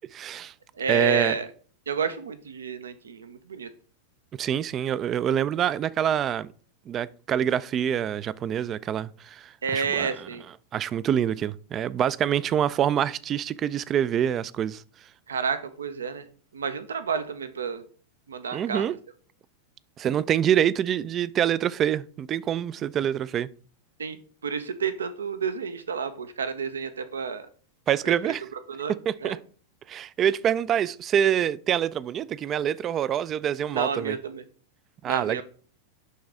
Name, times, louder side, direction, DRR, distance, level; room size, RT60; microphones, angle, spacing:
voice 1, 0.1-0.5 0.9-1.4 4.4-6.5 6.9-10.1 10.7-14.8 18.5-18.9 20.0-23.5 27.9-28.4 28.9-29.4 29.9-34.2 35.0-35.4, right 9 dB, 30° right, 0.3 m, -26 dB
voice 2, 0.8-1.5 1.9-3.7 9.6-10.4 15.3-16.3 16.5-17.8 18.3-18.9 24.0-24.2 24.4-27.5 28.0-28.1 28.7-29.4 33.7-34.4 35.0-35.4, right 5 dB, 70° right, 0.6 m, -30 dB
11.0 x 4.0 x 3.5 m
figure-of-eight pair, 90°, 0 cm